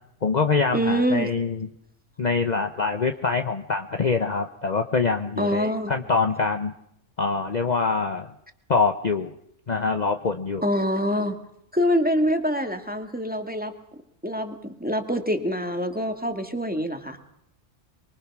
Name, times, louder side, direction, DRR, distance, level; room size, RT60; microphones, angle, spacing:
voice 1, 0.2-1.7 2.2-6.7 7.2-8.3 8.7-9.3 9.7-10.6, left 4 dB, 35° left, 7 dB, 1.0 m, -24 dB
voice 2, 0.7-1.3 5.4-5.9 10.6-11.4 11.7-13.7 14.2-14.5 14.8-17.2, equal, 5° right, 6 dB, 2.1 m, -25 dB
24.0 x 23.5 x 6.1 m, 0.77 s
omnidirectional pair, 1.3 m